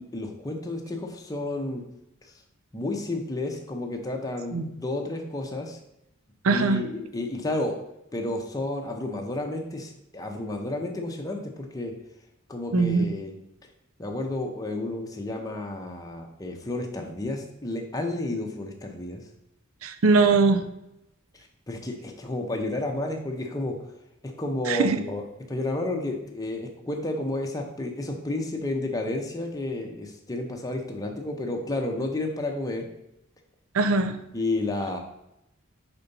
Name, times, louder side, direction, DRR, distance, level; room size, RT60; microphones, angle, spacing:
voice 1, 0.0-1.8 2.7-5.8 6.5-7.8 8.1-11.9 12.5-13.3 14.0-19.2 21.7-23.9 24.2-32.9 34.3-35.0, left 2 dB, 15° left, 2 dB, 0.7 m, -31 dB
voice 2, 6.4-6.8 12.7-13.2 19.8-20.7 24.7-25.0 33.7-34.2, right 4 dB, 85° right, 10 dB, 0.6 m, -21 dB
4.4 x 4.1 x 5.3 m, 0.86 s
head